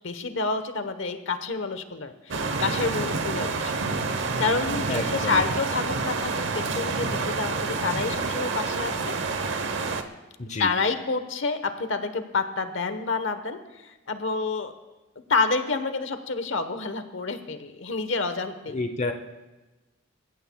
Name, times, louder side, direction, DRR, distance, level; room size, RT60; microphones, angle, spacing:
voice 1, 0.0-9.1 10.6-14.7 15.3-18.8, left 4 dB, 65° left, 9 dB, 1.1 m, -29 dB
sound 1, 2.3-10.0, right 4 dB, 65° right, 1.0 m, -28 dB
voice 2, 4.9-5.4 10.4-10.7 18.7-19.1, left 2 dB, 35° left, 5 dB, 0.8 m, -29 dB
26.5 x 15.5 x 2.3 m, 1.1 s
head